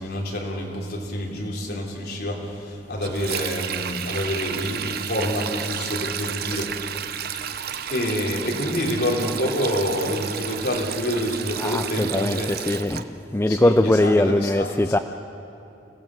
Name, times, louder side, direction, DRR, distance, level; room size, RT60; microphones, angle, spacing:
voice 1, 0.0-6.7 7.3-12.5 13.4-14.9, equal, 55° left, 3.3 m, -27 dB
Sink (filling or washing), 3.0-13.0, right 9 dB, 55° right, 0.7 m, -32 dB
voice 2, 11.6-15.0, left 1 dB, 10° left, 0.4 m, -21 dB
25.5 x 16.5 x 7.6 m
head